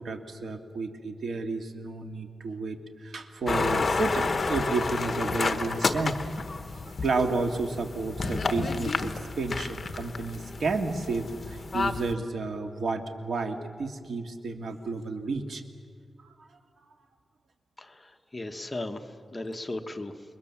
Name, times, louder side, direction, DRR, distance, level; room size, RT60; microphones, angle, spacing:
voice 1, 0.0-6.3 6.9-15.6, right 3 dB, 70° right, 4 dB, 2.1 m, -31 dB
sound 1, 3.5-12.1, left 4 dB, 40° left, 1.2 m, -30 dB
voice 2, 17.8-19.0 19.3-20.1, left 2 dB, 20° left, 5 dB, 1.3 m, -36 dB
28.5 x 22.5 x 7.3 m, 2.1 s
wide cardioid pair, 140°, 0 cm